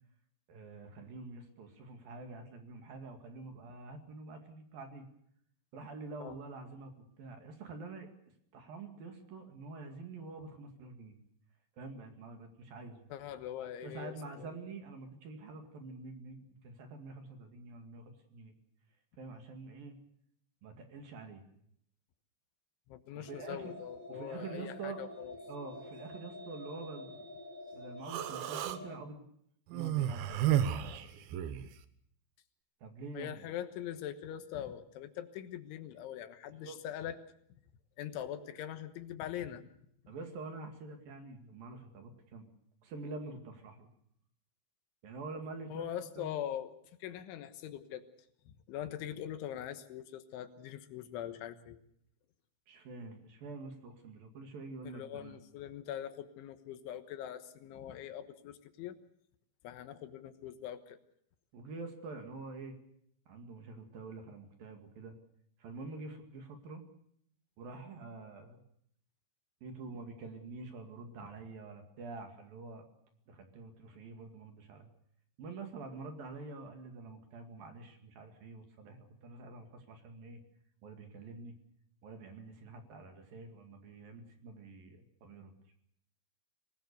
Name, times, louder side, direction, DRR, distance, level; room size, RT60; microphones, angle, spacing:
voice 1, 0.5-5.1 5.7-6.9 7.2-8.1 8.5-11.2 11.8-13.1 13.8-18.5 19.2-20.0 20.6-21.4 23.2-23.8 24.1-25.0 25.5-27.2 27.7-29.2 29.7-31.2 32.8-33.3 36.6-36.8 40.1-42.5 42.8-43.9 45.0-45.9 46.2-46.4 52.7-55.4 61.5-62.8 63.3-65.2 65.6-66.8 67.6-68.6 69.6-72.9 73.3-74.9 75.4-80.4 80.8-81.5 82.0-85.5, right 3 dB, 55° right, 5 dB, 3.5 m, -47 dB
voice 2, 13.1-14.5 22.9-25.4 33.1-37.2 38.0-39.6 45.7-46.7 47.0-48.1 48.5-51.8 54.8-59.0 59.6-61.0, left 10 dB, 80° left, 9 dB, 3.6 m, -42 dB
sound 1, 23.3-29.0, left 1 dB, 20° left, 4.2 m, -48 dB
Human voice, 28.0-28.8 29.7-31.7, right 11 dB, 70° right, 2.5 m, -32 dB
25.0 x 19.5 x 6.8 m, 0.69 s
omnidirectional pair, 5.5 m